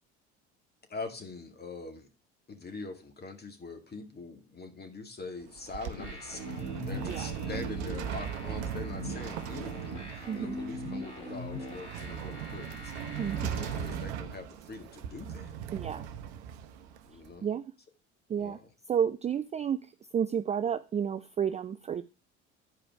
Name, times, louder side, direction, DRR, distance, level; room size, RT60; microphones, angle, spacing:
voice 1, 0.9-2.1 2.5-12.9 13.4-15.5 17.0-17.5 18.3-18.7, left 4 dB, 30° left, 6 dB, 2.1 m, -43 dB
sound 1, 5.4-17.3, right 8 dB, 70° right, 0.8 m, -39 dB
sound 2, 6.0-14.0, equal, 85° left, 2.6 m, -41 dB
voice 2, 13.2-13.6 15.7-16.1 17.4-17.7 18.3-18.6 18.9-19.9 20.1-22.0, right 8 dB, 20° right, 12 dB, 0.4 m, -31 dB
10.5 x 4.9 x 4.6 m, 0.32 s
figure-of-eight pair, 60°, 34 cm